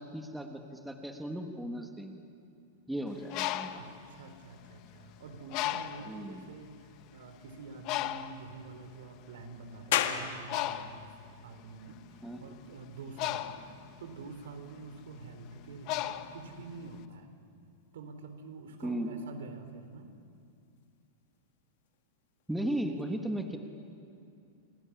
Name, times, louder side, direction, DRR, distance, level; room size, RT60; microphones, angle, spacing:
voice 1, 0.0-2.2 2.9-3.8 6.0-6.5 12.2-12.4 18.8-19.1 22.5-23.6, right 1 dB, ahead, 4 dB, 1.3 m, -36 dB
Bird, 3.1-5.0 5.5-6.2 6.9-7.0 7.3-17.0, left 13 dB, 30° left, 0.9 m, -37 dB
voice 2, 3.7-13.7 14.0-17.3 17.9-20.1, right 4 dB, 75° right, 8 dB, 4.0 m, -47 dB
sound 1, 9.9-23.0, left 10 dB, 50° left, 2.0 m, -42 dB
29.5 x 20.0 x 10.0 m, 2.4 s
supercardioid pair, 180°, 0 cm